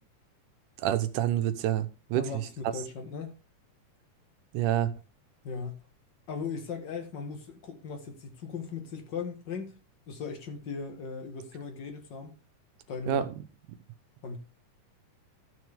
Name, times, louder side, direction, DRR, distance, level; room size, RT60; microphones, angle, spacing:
voice 1, 0.8-2.3 4.5-4.9 13.1-13.3, right 12 dB, 80° right, 2.3 m, -27 dB
voice 2, 2.1-3.3 5.4-5.8 6.3-9.7 10.1-12.3 12.9-13.2 14.2-14.4, left 5 dB, 45° left, 1.7 m, -38 dB
14.0 x 6.4 x 3.5 m
omnidirectional pair, 3.6 m